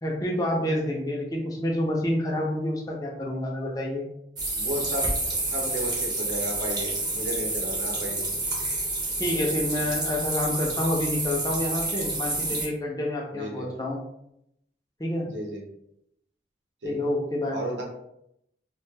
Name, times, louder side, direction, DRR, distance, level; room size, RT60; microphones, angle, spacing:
voice 1, 0.0-4.1 9.2-14.0 15.0-15.3 16.8-17.6, left 1 dB, 20° left, -2 dB, 0.4 m, -28 dB
sound 1, 4.4-12.7, right 2 dB, 20° right, 0.6 m, -29 dB
voice 2, 4.6-8.3 13.3-13.7 15.3-15.6 16.8-17.0 17.5-17.8, equal, 85° right, -1 dB, 0.7 m, -33 dB
2.4 x 2.1 x 3.2 m, 0.79 s
head